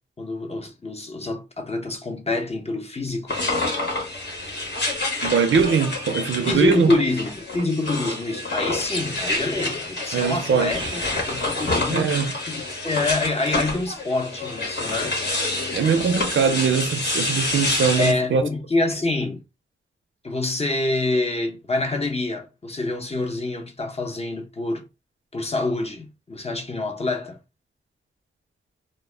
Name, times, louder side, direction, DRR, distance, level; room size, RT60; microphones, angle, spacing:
voice 1, 0.2-3.4 6.5-12.1 12.5-15.2 18.0-19.4 20.2-24.9 25.3-27.4, left 2 dB, 30° left, 0.7 m, -26 dB
sound 1, 3.3-18.1, left 2 dB, 60° left, 0.9 m, -28 dB
voice 2, 5.2-6.9 10.1-10.9 11.9-12.3 15.7-18.4, right 6 dB, 75° right, 0.4 m, -21 dB
2.1 x 2.0 x 3.2 m
wide cardioid pair, 85°, 20 cm